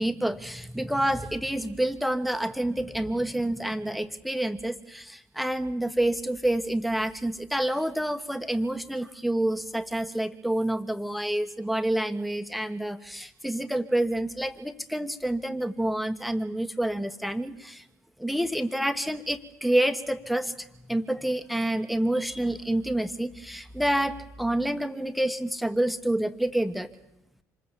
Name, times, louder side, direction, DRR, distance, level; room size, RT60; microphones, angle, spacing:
voice 1, 0.0-17.8 18.2-26.9, right 1 dB, ahead, 9 dB, 1.4 m, -28 dB
26.5 x 20.5 x 7.5 m, 0.88 s
hypercardioid pair, 65°, 8 cm